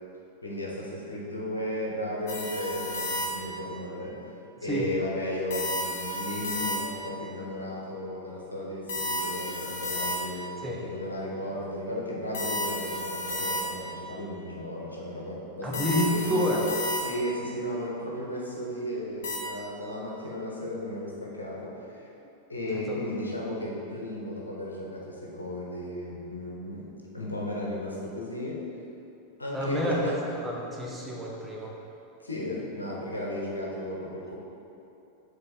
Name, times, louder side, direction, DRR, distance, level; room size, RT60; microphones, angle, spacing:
voice 1, 0.4-4.1 4.6-16.5 17.0-22.1 22.5-26.9 27.1-28.6 29.4-30.1 32.2-34.4, left 1 dB, 80° left, -3 dB, 1.1 m, -35 dB
sound 1, 2.3-3.7 5.5-7.2 8.9-10.6 12.3-14.0 15.7-17.4 19.2-19.4, equal, 55° left, 1.2 m, -32 dB
voice 2, 15.6-16.6 22.9-23.0 29.5-31.7, equal, 5° right, -4 dB, 1.0 m, -29 dB
6.6 x 3.9 x 4.3 m, 2.9 s
figure-of-eight pair, 90°, 0 cm